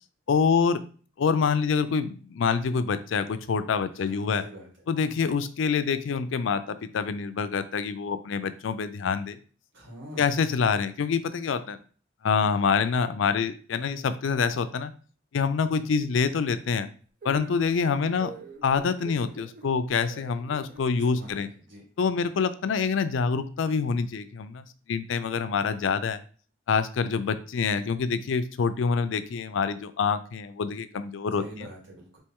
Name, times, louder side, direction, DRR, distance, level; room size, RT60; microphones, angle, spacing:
voice 1, 0.3-0.8 1.2-4.4 4.9-9.4 10.2-11.8 12.2-14.9 15.3-16.9 17.2-18.3 18.6-21.5 22.0-26.2 26.7-31.4, left 5 dB, 80° left, 12 dB, 0.4 m, -26 dB
voice 2, 3.9-4.7 9.7-10.4 21.0-21.8 31.3-32.2, right 1 dB, 75° right, -2 dB, 2.0 m, -44 dB
sound 1, 17.2-21.4, right 2 dB, 45° right, 0.6 m, -44 dB
4.3 x 2.9 x 3.6 m, 0.41 s
head